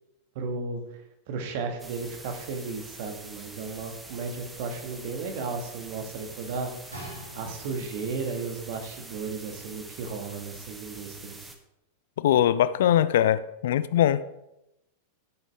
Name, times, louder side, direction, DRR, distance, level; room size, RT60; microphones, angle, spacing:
voice 1, 0.4-0.8 1.3-6.7 7.4-11.5, right 4 dB, 50° right, 4 dB, 2.0 m, -34 dB
sound 1, 1.8-11.6, right 2 dB, 10° right, 1.4 m, -45 dB
sound 2, 6.9-8.2 8.9-9.0, equal, 80° right, 3.5 m, -43 dB
voice 2, 12.2-14.2, left 11 dB, 60° left, 15 dB, 0.5 m, -22 dB
13.5 x 8.3 x 3.7 m, 0.88 s
figure-of-eight pair, 90°, 0 cm